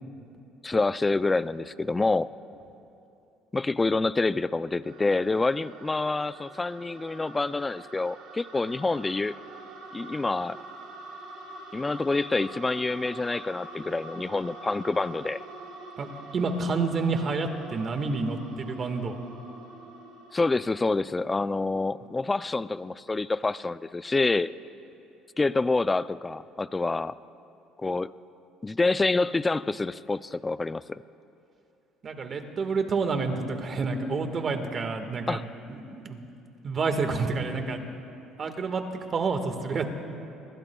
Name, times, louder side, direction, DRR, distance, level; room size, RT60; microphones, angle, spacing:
voice 1, 0.6-2.3 3.5-9.3 9.9-10.6 11.7-15.4 20.3-24.5 25.4-27.1 27.8-28.1 28.6-31.0 35.3-35.4, left 3 dB, 20° left, 16 dB, 0.4 m, -27 dB
sound 1, 4.8-20.9, right 3 dB, 80° right, 2.0 m, -45 dB
voice 2, 16.3-19.1 32.0-35.4 35.7-36.2 36.6-37.8 38.4-38.8 39.1-39.9, right 4 dB, 40° right, 6 dB, 1.6 m, -29 dB
27.0 x 21.5 x 2.3 m, 2.7 s
supercardioid pair, 90°, 0 cm